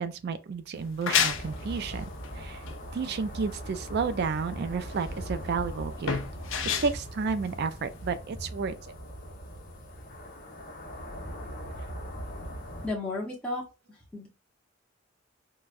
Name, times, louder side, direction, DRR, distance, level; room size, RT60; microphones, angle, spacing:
voice 1, 0.0-2.0 2.4-2.6 2.9-6.2 6.8-8.8, right 5 dB, 55° right, 0.3 m, -31 dB
sound 1, 0.7-8.2, left 7 dB, 75° left, 0.6 m, -32 dB
sound 2, 1.3-12.9, equal, 45° left, 1.0 m, -40 dB
voice 2, 12.8-13.6 13.9-14.3, left 2 dB, 5° left, 0.8 m, -33 dB
4.6 x 2.2 x 2.5 m
head